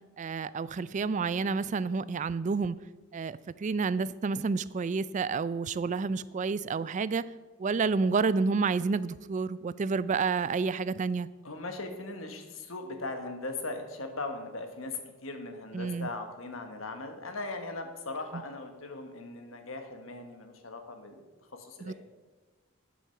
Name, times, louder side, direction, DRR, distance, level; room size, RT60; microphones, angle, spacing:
voice 1, 0.2-2.8 3.1-7.2 7.6-11.3 15.7-16.1 21.8-21.9, right 4 dB, 35° right, 17 dB, 0.3 m, -29 dB
voice 2, 11.4-14.9 15.2-21.2 21.6-21.9, left 2 dB, 70° left, 6 dB, 1.4 m, -39 dB
10.5 x 7.1 x 5.7 m, 1.2 s
head